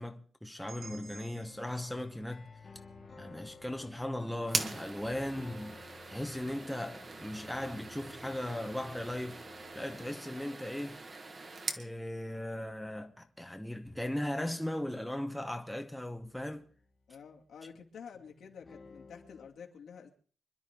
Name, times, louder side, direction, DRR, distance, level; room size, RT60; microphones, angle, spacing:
voice 1, 0.0-2.5 3.2-5.8 6.1-9.4 9.7-11.0 11.8-16.6, left 1 dB, ahead, 0.9 m, -38 dB
sound 1, 0.7-4.7, right 4 dB, 60° right, 2.4 m, -57 dB
sound 2, 0.8-12.1 12.3-13.5 14.4-17.6 18.1-19.5, left 4 dB, 30° left, 1.7 m, -55 dB
sound 3, 4.4-11.9, right 3 dB, 30° right, 1.4 m, -41 dB
voice 2, 17.1-20.1, left 6 dB, 75° left, 2.5 m, -50 dB
26.0 x 11.5 x 3.7 m
wide cardioid pair, 170°, 0 cm